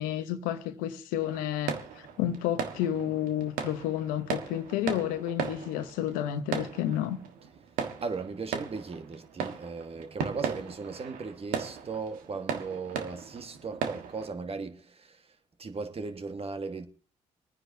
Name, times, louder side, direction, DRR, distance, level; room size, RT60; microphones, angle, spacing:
voice 1, 0.0-7.2, left 11 dB, 85° left, 0.9 m, -31 dB
sound 1, 1.2-14.3, right 7 dB, 80° right, 1.4 m, -37 dB
voice 2, 8.0-15.3 15.6-16.9, right 4 dB, 45° right, 1.6 m, -37 dB
26.0 x 9.6 x 2.7 m
supercardioid pair, 50°, 14 cm